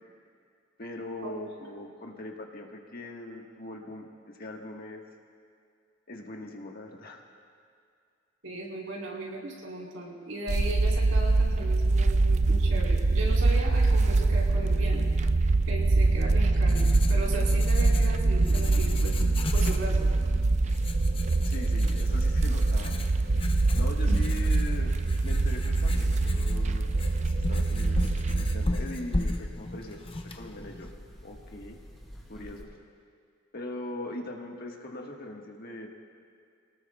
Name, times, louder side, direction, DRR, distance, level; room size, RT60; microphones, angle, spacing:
voice 1, 0.8-5.0 6.1-7.2 21.4-23.1 23.7-24.9 25.2-26.9 27.3-30.0 30.3-30.9 31.2-31.8 32.3-32.7 33.5-35.9, left 1 dB, 50° left, 1 dB, 1.5 m, -41 dB
voice 2, 8.4-15.1 15.7-19.1 19.5-20.1 24.0-24.2, right 2 dB, 90° right, -4 dB, 4.3 m, -37 dB
sound 1, 10.5-28.7, right 2 dB, 35° right, 0.4 m, -24 dB
Writing, 16.1-30.9, left 1 dB, 30° left, 0.7 m, -36 dB
sound 2, 17.1-32.6, equal, ahead, 4.1 m, -46 dB
27.0 x 18.5 x 2.3 m, 2.3 s
head